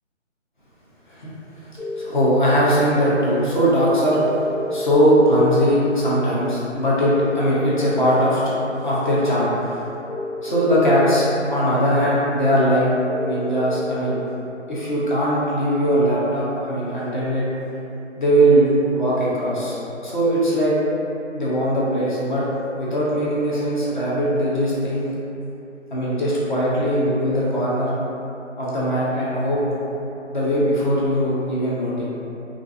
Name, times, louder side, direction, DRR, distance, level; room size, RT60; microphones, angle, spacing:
sound 1, 1.8-2.1 4.1-5.1 7.1-8.1 10.1-11.1 13.1-14.0, left 1 dB, 85° left, 1.0 m, -30 dB
voice 1, 2.0-4.2 4.7-8.4 8.8-9.8 10.4-12.9 13.2-14.2 14.7-17.5 18.2-20.7 21.3-22.5 22.7-25.1 25.9-27.9 28.6-29.9 30.3-32.0, equal, 40° left, -8 dB, 0.6 m, -20 dB
2.4 x 2.3 x 2.4 m, 2.9 s
hypercardioid pair, 165°, 38 cm